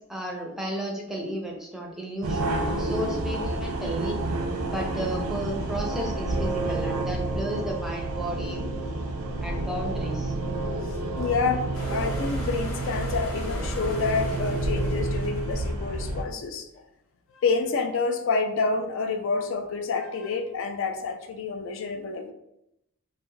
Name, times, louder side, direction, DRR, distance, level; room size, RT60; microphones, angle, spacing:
voice 1, 0.1-4.2 4.7-8.6 9.4-10.3, equal, ahead, -1 dB, 0.4 m, -33 dB
sound 1, 2.2-16.2, right 2 dB, 85° right, 0.4 m, -29 dB
voice 2, 10.9-16.7 17.3-22.3, left 4 dB, 60° left, 6 dB, 0.4 m, -28 dB
sound 2, 11.7-15.9, equal, 80° left, 0.9 m, -37 dB
2.4 x 2.3 x 3.1 m, 0.80 s
head